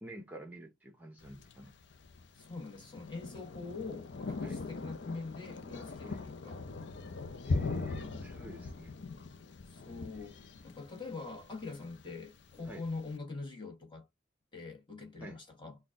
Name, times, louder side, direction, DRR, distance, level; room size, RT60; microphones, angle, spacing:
voice 1, 0.0-1.7 4.4-4.6 6.0-6.2 7.4-8.9 10.1-10.2 12.7-12.8 15.2-15.4, right 1 dB, 10° right, 0.7 m, -49 dB
Thunder, 1.2-13.1, left 3 dB, 60° left, 0.5 m, -41 dB
voice 2, 2.3-6.6 9.7-14.0 14.5-15.8, left 3 dB, 25° left, 1.2 m, -44 dB
4.0 x 2.2 x 3.6 m
head